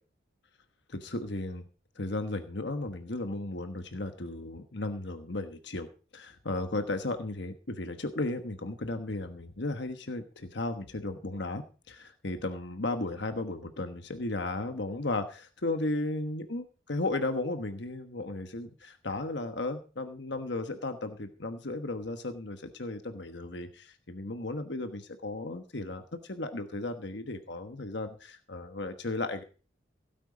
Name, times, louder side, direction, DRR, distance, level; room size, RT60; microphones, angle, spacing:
voice 1, 0.9-1.6 1.9-29.4, left 2 dB, 60° left, 8 dB, 1.2 m, -35 dB
17.0 x 9.1 x 5.0 m, 0.37 s
head